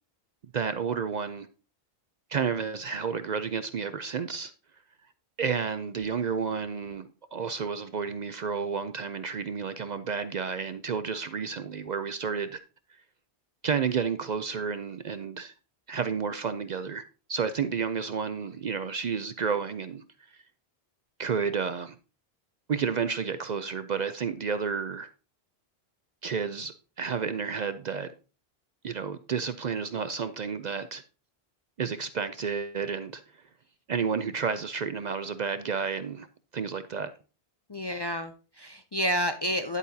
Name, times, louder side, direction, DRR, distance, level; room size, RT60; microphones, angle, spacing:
voice 1, 0.5-1.5 2.3-4.5 5.4-12.6 13.6-15.5 15.9-17.0 17.3-20.0 21.2-22.0 22.7-25.1 26.2-28.1 28.8-31.0 31.8-33.2 33.9-36.3 36.5-37.1, right 6 dB, 55° right, 0.5 m, -31 dB
voice 2, 37.7-39.8, equal, 35° left, 0.4 m, -30 dB
9.9 x 8.4 x 2.7 m
omnidirectional pair, 1.1 m